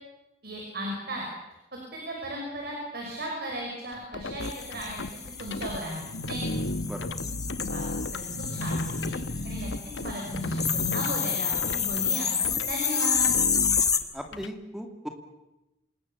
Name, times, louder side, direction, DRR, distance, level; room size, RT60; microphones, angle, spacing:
voice 1, 0.4-1.2 1.9-5.0 5.4-6.4 7.6-7.8 8.1-8.3 8.5-9.1 9.4-13.3, equal, 55° right, 0 dB, 5.9 m, -35 dB
sound 1, 3.9-5.8 6.2-11.2 11.5-12.1 12.4-12.7 13.1-14.5, left 2 dB, 65° left, 1.1 m, -35 dB
sound 2, 4.4-14.0, left 7 dB, 20° left, 1.4 m, -29 dB
sound 3, 6.0-12.1, equal, 85° left, 7.2 m, -37 dB
voice 2, 14.1-15.1, equal, ahead, 4 dB, 2.4 m, -37 dB
27.5 x 20.0 x 7.2 m, 0.97 s
head